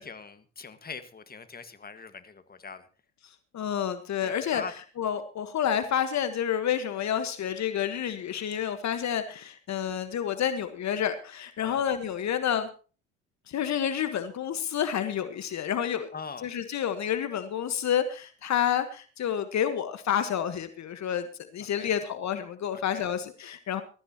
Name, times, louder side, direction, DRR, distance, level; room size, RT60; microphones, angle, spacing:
voice 1, 0.0-2.9 4.2-4.7 11.6-11.8 16.1-16.5 21.7-22.0 22.7-23.1, left 5 dB, 25° left, 10 dB, 1.7 m, -42 dB
voice 2, 3.5-4.6 5.0-12.7 13.5-16.1 16.4-21.3 21.5-23.8, left 9 dB, 50° left, 10 dB, 1.4 m, -29 dB
21.0 x 13.5 x 3.0 m, 0.37 s
hypercardioid pair, 60°, 35 cm